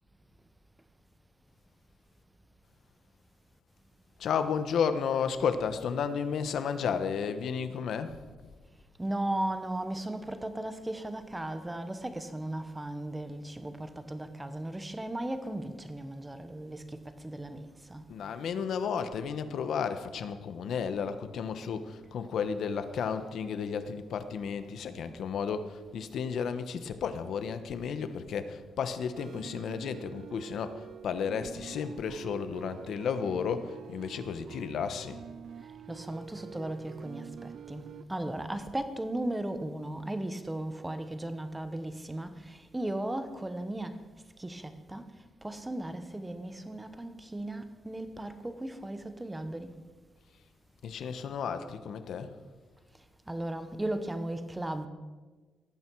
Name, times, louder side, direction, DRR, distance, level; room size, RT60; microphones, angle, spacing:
voice 1, 4.2-8.2 18.1-35.2 50.8-52.3, left 6 dB, 60° left, 1.1 m, -33 dB
voice 2, 9.0-18.1 18.5-18.6 35.6-44.1 44.4-49.8 52.9-54.9, right 1 dB, 10° right, 1.0 m, -36 dB
sound 1, 29.1-38.0, right 8 dB, 55° right, 0.5 m, -46 dB
18.0 x 14.5 x 4.7 m
wide cardioid pair, 170°, 0 cm